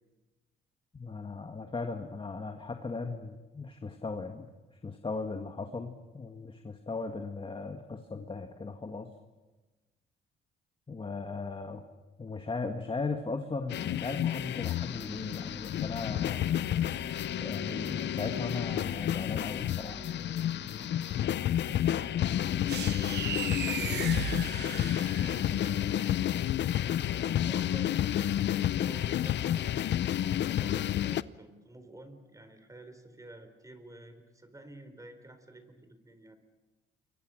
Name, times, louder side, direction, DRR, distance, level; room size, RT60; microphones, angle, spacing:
voice 1, 0.9-4.5 4.8-9.1 10.9-11.8 12.2-16.4 17.4-20.0, left 4 dB, 25° left, 5 dB, 1.9 m, -37 dB
sound 1, 13.7-31.2, left 11 dB, 65° left, 0.7 m, -30 dB
sound 2, 14.8-25.6, left 5 dB, 45° left, 7.4 m, -46 dB
voice 2, 22.5-24.2 25.2-26.3 27.1-29.8 30.4-36.4, right 1 dB, 15° right, 8 dB, 4.2 m, -50 dB
sound 3, 22.7-25.6, right 10 dB, 60° right, 0.9 m, -37 dB
29.0 x 23.0 x 6.5 m, 1.2 s
cardioid pair, 90°, 20 cm